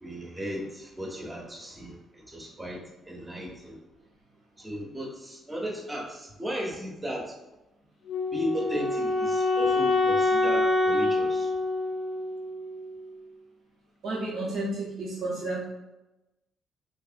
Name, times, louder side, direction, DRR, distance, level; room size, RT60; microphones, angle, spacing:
voice 1, 0.0-3.8 4.6-7.3 8.3-11.5, equal, 15° right, -1 dB, 0.7 m, -35 dB
Wind instrument woodwind instrument, 8.1-13.1, left 2 dB, 60° left, 0.5 m, -26 dB
voice 2, 14.0-15.6, right 2 dB, 75° right, -5 dB, 0.7 m, -31 dB
3.5 x 3.1 x 2.5 m, 1.0 s
cardioid pair, 90°, 0 cm